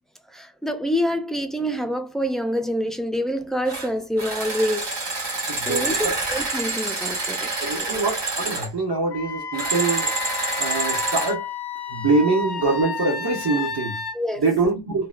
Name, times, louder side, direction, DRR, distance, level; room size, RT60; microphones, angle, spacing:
voice 1, 0.3-4.9 5.7-7.9 14.1-14.4, equal, ahead, 0.3 m, -26 dB
sound 1, 3.6-3.9 4.2-8.7 9.5-11.3, right 3 dB, 85° right, 1.3 m, -27 dB
voice 2, 5.5-6.1 7.6-11.4 11.9-14.0 14.4-15.1, right 3 dB, 60° right, 1.0 m, -24 dB
Wind instrument woodwind instrument, 9.1-14.2, left 5 dB, 70° left, 0.5 m, -31 dB
2.8 x 2.2 x 2.4 m
wide cardioid pair, 100°, 41 cm